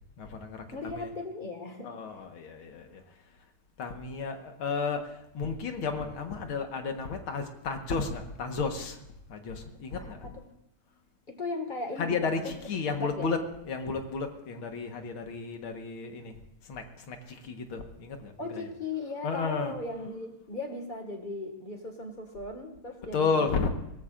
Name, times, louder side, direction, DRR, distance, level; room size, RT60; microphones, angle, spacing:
voice 1, 0.2-0.6 0.9-1.1 1.8-3.0 3.8-9.0 9.3-10.2 12.0-13.4 13.7-16.3 16.6-18.7 19.2-19.7 23.1-23.7, left 4 dB, 70° left, 5 dB, 2.2 m, -32 dB
voice 2, 0.7-1.9 10.0-10.5 11.3-12.7 13.0-13.4 18.4-23.7, left 2 dB, 25° left, 3 dB, 1.9 m, -37 dB
22.5 x 18.0 x 2.6 m, 0.87 s
omnidirectional pair, 2.4 m